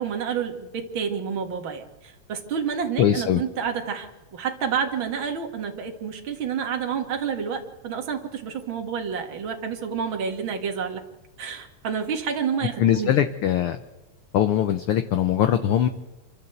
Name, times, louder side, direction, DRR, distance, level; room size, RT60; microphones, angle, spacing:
voice 1, 0.0-11.0 11.4-13.2, right 7 dB, 45° right, 4 dB, 2.4 m, -29 dB
voice 2, 3.0-3.4 12.8-13.8 14.3-15.9, left 10 dB, 70° left, 9 dB, 1.3 m, -21 dB
26.5 x 12.5 x 8.0 m, 1.2 s
omnidirectional pair, 3.4 m